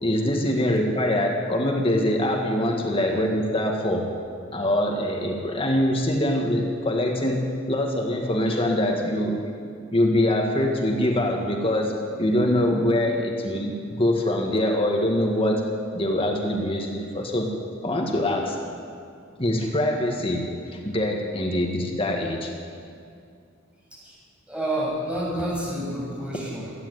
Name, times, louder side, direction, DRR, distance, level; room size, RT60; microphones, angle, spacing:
voice 1, 0.0-4.1 4.5-9.5 9.9-15.6 15.9-17.5 17.8-18.6 19.4-22.5, left 1 dB, 30° left, 1 dB, 1.9 m, -24 dB
voice 2, 24.5-26.7, right 1 dB, 5° right, -5 dB, 6.7 m, -29 dB
26.5 x 10.5 x 9.4 m, 2.4 s
head